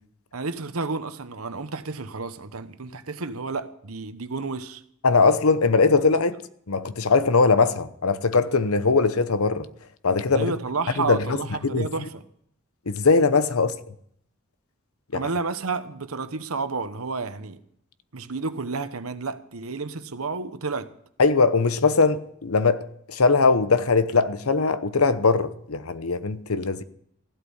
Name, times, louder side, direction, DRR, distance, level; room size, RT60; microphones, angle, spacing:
voice 1, 0.3-4.8 10.3-12.2 15.1-17.6 18.1-20.9, right 4 dB, 85° right, 1.0 m, -31 dB
voice 2, 5.0-6.4 6.7-9.7 10.0-10.5 11.0-11.2 11.6-11.9 12.9-13.8 15.1-15.2 21.2-22.8 23.1-26.8, left 4 dB, 90° left, 0.9 m, -20 dB
15.5 x 12.0 x 5.6 m
head